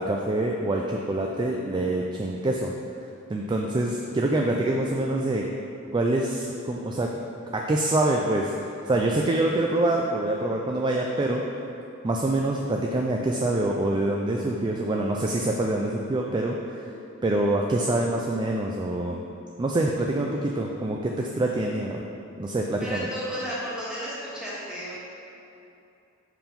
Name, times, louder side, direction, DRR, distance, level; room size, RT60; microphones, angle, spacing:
voice 1, 0.0-2.7 3.3-5.4 5.9-7.1 7.5-11.4 12.0-16.9 17.2-19.2 19.6-22.0 22.4-23.1, right 2 dB, 20° right, 0 dB, 0.3 m, -25 dB
voice 2, 22.8-25.0, equal, 5° right, -9 dB, 1.6 m, -33 dB
5.6 x 4.7 x 5.1 m, 2.7 s
head